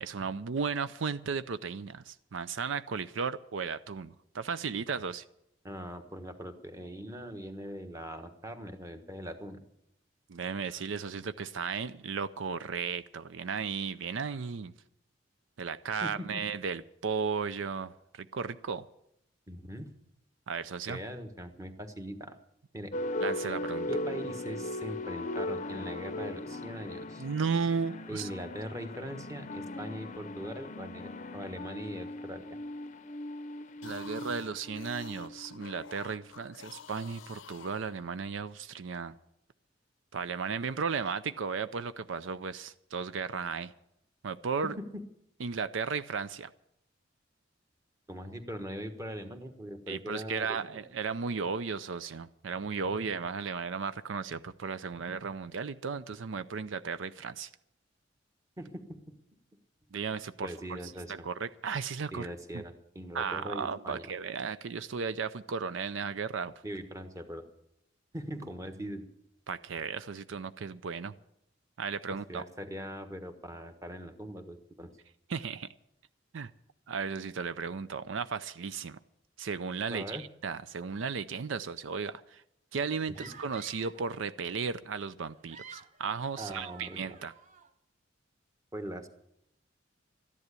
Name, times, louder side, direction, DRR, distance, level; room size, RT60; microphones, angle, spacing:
voice 1, 0.0-5.2 10.3-14.7 15.6-18.9 20.5-21.0 23.2-23.9 27.2-28.3 33.8-39.1 40.1-43.7 44.2-44.7 45.4-46.5 49.9-57.5 59.9-62.3 62.5-62.6 63.1-66.5 69.5-71.1 71.8-72.4 75.3-75.7 76.3-76.5 76.9-79.0 79.4-82.4 82.7-87.3, right 5 dB, 75° right, 13 dB, 0.5 m, -35 dB
voice 2, 5.6-9.6 16.0-16.4 19.5-19.9 20.9-22.4 22.7-22.9 23.9-27.2 28.1-32.6 44.8-45.0 48.1-50.8 58.6-59.0 60.4-61.3 62.1-64.1 66.6-67.5 68.1-69.1 72.3-74.9 79.9-80.2 83.2-83.3 86.4-87.0 88.7-89.1, equal, 15° right, 6 dB, 1.3 m, -41 dB
sound 1, 22.9-36.3, left 1 dB, 40° left, 0.6 m, -38 dB
sound 2, 33.7-38.4, left 7 dB, 75° left, 0.6 m, -51 dB
sound 3, 83.1-84.1 85.3-87.7, right 5 dB, 40° right, 1.0 m, -50 dB
13.5 x 11.0 x 8.3 m, 0.78 s
head